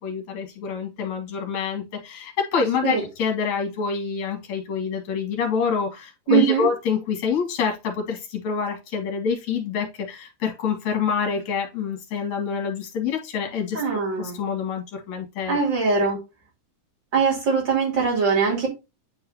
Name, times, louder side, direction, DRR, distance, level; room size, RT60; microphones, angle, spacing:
voice 1, 0.0-13.8 14.2-15.6 16.0-16.1, left 6 dB, 55° left, 2.8 m, -26 dB
voice 2, 6.3-6.7 13.7-14.4 15.5-16.2 17.1-18.7, right 5 dB, 35° right, 3.1 m, -21 dB
9.7 x 3.9 x 2.8 m
omnidirectional pair, 4.1 m